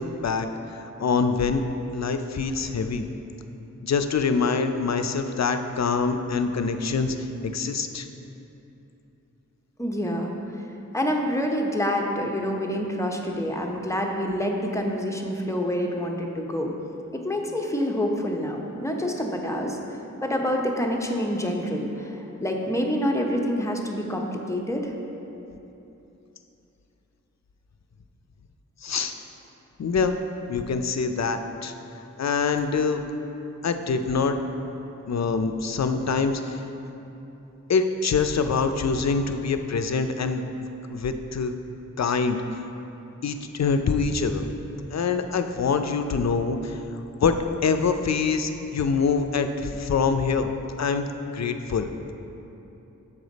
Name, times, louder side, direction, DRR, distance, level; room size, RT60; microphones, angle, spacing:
voice 1, 0.0-1.6 1.9-3.1 3.8-8.1 28.8-29.1 29.8-30.2 30.5-31.7 32.2-33.0 33.6-34.4 35.1-36.6 37.7-40.5 40.9-41.5 42.0-42.4 43.2-44.4 44.9-46.8 47.2-52.1, left 5 dB, 60° left, 7 dB, 0.5 m, -25 dB
voice 2, 9.8-10.3 10.9-16.7 17.1-19.8 20.2-24.9, equal, 10° left, 0 dB, 0.7 m, -27 dB
7.2 x 5.0 x 3.9 m, 3.0 s
wide cardioid pair, 40°, 31 cm